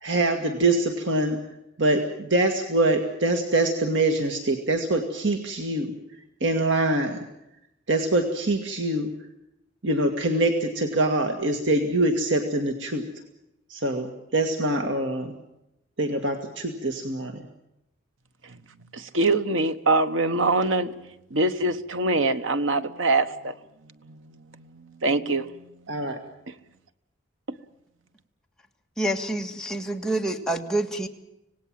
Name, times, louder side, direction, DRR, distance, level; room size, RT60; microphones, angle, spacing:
voice 1, 0.0-1.4 1.8-5.9 6.4-7.2 7.9-9.1 9.8-13.1 13.7-15.4 16.0-17.4 25.9-26.2, right 2 dB, 70° right, 1.9 m, -24 dB
voice 2, 18.9-23.5 24.0-25.7 26.5-26.6, right 2 dB, 90° right, 1.3 m, -24 dB
voice 3, 29.0-31.1, right 1 dB, 5° left, 1.8 m, -27 dB
26.0 x 18.5 x 7.6 m
head